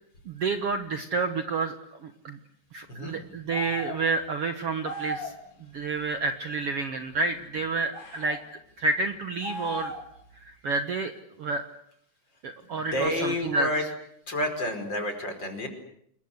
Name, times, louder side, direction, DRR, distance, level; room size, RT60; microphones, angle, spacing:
voice 1, 0.3-1.7 2.0-2.4 2.7-5.3 5.7-8.4 8.8-9.9 10.5-11.1 11.4-11.6 12.4-13.9, right 3 dB, 55° right, 8 dB, 1.9 m, -29 dB
sound 1, 3.5-4.0 4.8-5.4 7.9-8.4 9.4-10.2, left 1 dB, 65° left, 4.8 m, -36 dB
voice 2, 12.7-13.8 14.3-15.7, left 1 dB, 30° left, 6 dB, 5.5 m, -29 dB
27.5 x 22.5 x 8.0 m, 0.70 s
omnidirectional pair, 3.8 m